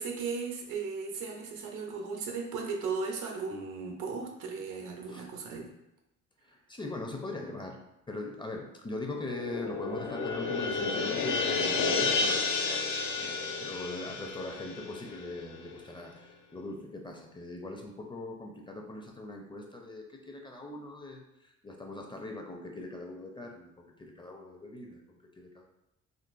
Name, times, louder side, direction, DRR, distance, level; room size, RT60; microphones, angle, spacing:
voice 1, 0.0-5.7, right 4 dB, 90° right, 1 dB, 0.7 m, -36 dB
voice 2, 6.4-7.8 8.1-12.8 13.2-25.6, left 2 dB, 15° left, 1 dB, 0.5 m, -41 dB
sound 1, 9.2-15.7, left 4 dB, 75° left, 0.5 m, -31 dB
3.8 x 2.5 x 2.5 m, 0.88 s
cardioid pair, 90°, 30 cm